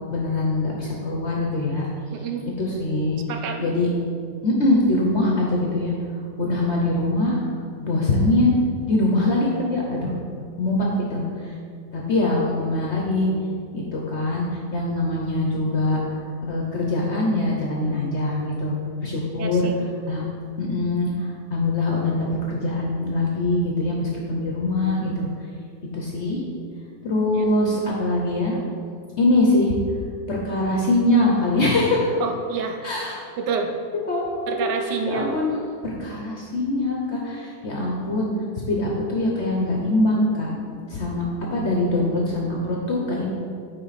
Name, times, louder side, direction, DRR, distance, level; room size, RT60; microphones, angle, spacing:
voice 1, 0.1-1.9 2.6-3.2 3.6-3.9 4.4-5.9 6.4-7.4 7.8-8.6 8.8-10.1 10.6-11.2 11.9-13.3 13.7-16.0 16.5-18.7 19.0-19.7 20.1-20.2 20.6-25.3 25.9-26.4 27.0-28.6 29.2-29.7 30.3-32.1 32.8-33.1 34.1-34.7 35.1-35.5 35.8-38.3 38.7-40.6 40.9-41.3 41.5-43.3, left 2 dB, 55° left, -2 dB, 0.8 m, -23 dB
voice 2, 2.1-2.4 3.3-3.6 19.4-19.8 27.3-27.5 32.2-32.8 33.4-33.7 34.5-35.4, right 5 dB, 75° right, 4 dB, 1.3 m, -28 dB
8.9 x 3.7 x 4.1 m, 2.3 s
omnidirectional pair, 1.9 m